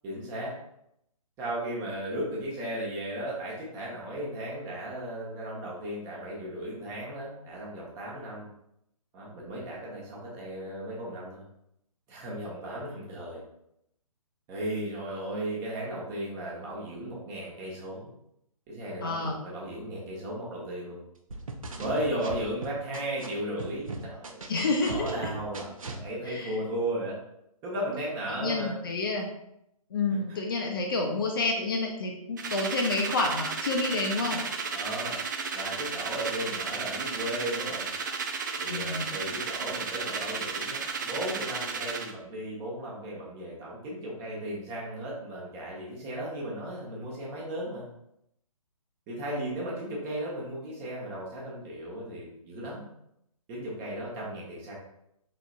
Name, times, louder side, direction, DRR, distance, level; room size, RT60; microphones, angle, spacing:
voice 1, 0.0-0.5 1.4-8.5 9.1-11.4 12.1-13.4 14.5-18.1 18.7-21.0 21.8-24.5 24.8-27.1 27.6-28.8 30.1-30.2 34.7-35.2 35.5-37.9 38.6-47.9 49.1-52.9 53.5-54.8, right 1 dB, 15° right, -4 dB, 1.0 m, -35 dB
voice 2, 19.0-19.4 24.5-25.3 26.2-26.6 28.3-29.3 29.9-34.4 38.7-39.1, left 3 dB, 35° left, 1 dB, 0.6 m, -29 dB
sound 1, 21.3-23.3 23.6-26.0, right 3 dB, 65° right, 0.7 m, -38 dB
sound 2, 32.4-42.1, right 5 dB, 30° right, 0.4 m, -33 dB
4.7 x 3.8 x 2.4 m, 0.78 s
figure-of-eight pair, 135°, 19 cm